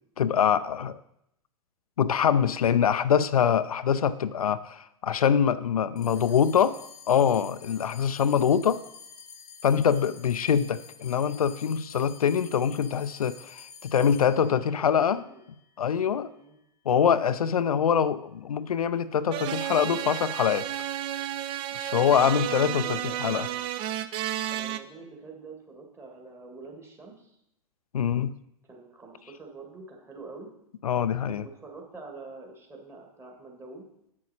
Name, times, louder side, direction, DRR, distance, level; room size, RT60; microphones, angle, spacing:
voice 1, 0.2-1.0 2.0-6.7 7.1-8.8 9.6-15.2 15.8-16.3 16.9-20.7 21.7-23.5 27.9-28.3 30.8-31.5, left 8 dB, 80° left, 14 dB, 0.4 m, -24 dB
sound 1, 6.0-16.6, left 6 dB, 20° left, 1.0 m, -49 dB
voice 2, 6.0-6.7 7.5-7.8 14.4-15.4 16.3-16.6 22.6-23.7 24.5-27.4 28.7-30.5 31.4-33.8, right 3 dB, 15° right, 1 dB, 1.7 m, -46 dB
sound 2, 19.3-24.8, right 12 dB, 30° right, 0.4 m, -32 dB
8.4 x 6.6 x 4.2 m, 0.80 s
figure-of-eight pair, 105°, 18 cm